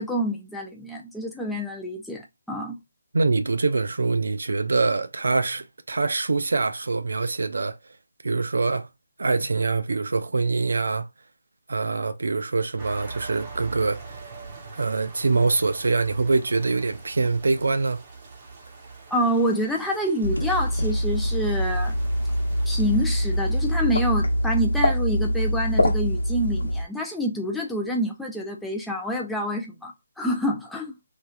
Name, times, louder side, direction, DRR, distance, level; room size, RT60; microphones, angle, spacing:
voice 1, 0.0-2.8 19.1-22.0 22.7-31.0, equal, ahead, 0.4 m, -27 dB
voice 2, 3.1-7.8 8.2-8.9 9.2-11.1 11.7-14.2 14.7-18.0, right 3 dB, 70° right, 0.5 m, -24 dB
sound 1, 12.8-24.4, right 4 dB, 25° right, 0.7 m, -43 dB
sound 2, 20.2-26.8, equal, 85° left, 0.9 m, -24 dB
3.1 x 2.3 x 2.3 m
figure-of-eight pair, 170°, 0 cm